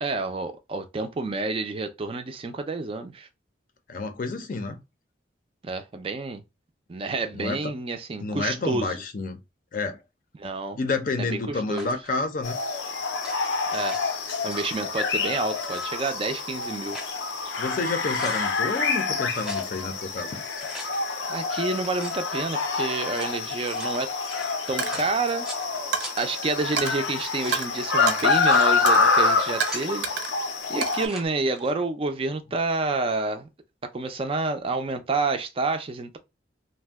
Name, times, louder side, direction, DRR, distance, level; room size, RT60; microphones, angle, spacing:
voice 1, 0.0-3.3 5.6-6.4 6.9-9.0 10.4-10.8 11.2-11.9 13.7-14.0 14.4-17.0 21.3-24.1 24.7-25.5 26.2-30.1 30.7-33.5 33.9-36.2, right 3 dB, 30° right, 0.4 m, -29 dB
voice 2, 3.9-4.8 7.3-7.7 8.2-9.4 9.7-10.0 10.8-12.6 17.6-20.4, left 3 dB, 50° left, 0.5 m, -29 dB
sound 1, 11.7-12.1 13.1-14.0 14.3-14.8 15.6-15.9 16.6-17.2 17.6-17.7 17.9-18.5 19.3-19.7 20.4-20.9 21.9-22.2 22.9-25.7 26.0-26.1 27.0-27.6 28.3-28.7 29.3-29.9 30.8-31.3, equal, ahead, 0.7 m, -41 dB
sound 2, 12.4-31.1, left 4 dB, 90° left, 0.6 m, -27 dB
Coin (dropping), 24.8-25.1 25.9-26.3 26.8-27.0 27.5-27.7 28.1-28.3 28.9-29.1 29.6-30.4 30.8-31.7, right 6 dB, 85° right, 0.6 m, -30 dB
2.5 x 2.1 x 3.4 m
head